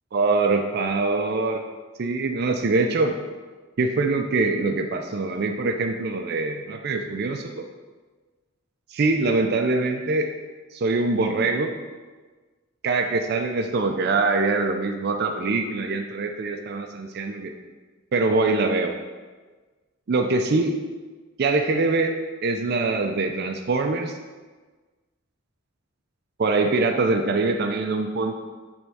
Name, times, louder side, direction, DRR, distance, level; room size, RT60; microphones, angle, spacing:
voice 1, 0.1-1.6 2.0-3.2 3.8-7.7 8.9-10.3 10.7-11.7 12.8-17.5 18.1-18.9 20.1-20.8 21.4-24.2 26.4-28.3, right 3 dB, 55° right, 5 dB, 0.4 m, -23 dB
7.6 x 3.5 x 5.5 m, 1.4 s
head